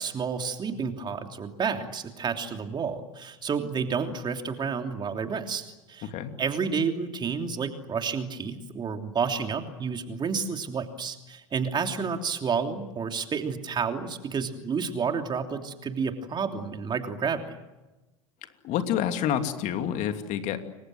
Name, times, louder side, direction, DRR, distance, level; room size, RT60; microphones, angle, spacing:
voice 1, 0.0-6.1 6.4-17.6, right 5 dB, 25° right, 5 dB, 3.1 m, -30 dB
voice 2, 18.6-20.6, left 9 dB, 45° left, 7 dB, 2.8 m, -28 dB
29.0 x 23.5 x 7.8 m, 1.1 s
hypercardioid pair, 85°, 16 cm